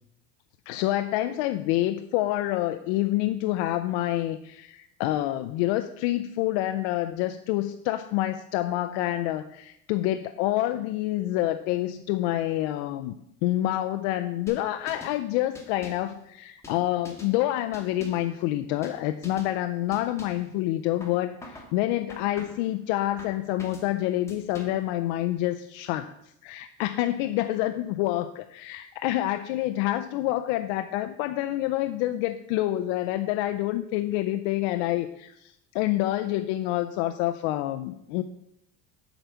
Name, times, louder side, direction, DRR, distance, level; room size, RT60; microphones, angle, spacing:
voice 1, 0.7-13.2 13.4-38.2, left 15 dB, 70° left, 9 dB, 0.5 m, -27 dB
sound 1, 14.5-15.2 15.6-16.1 16.6-17.4 17.7-18.3 18.8-19.0 19.2-19.5 19.9-20.5 21.0-21.7 22.1-22.7 23.2-23.9 24.3-24.9, left 1 dB, 5° left, 0.9 m, -45 dB
8.1 x 4.7 x 6.8 m, 0.79 s
cardioid pair, 180°, 36 cm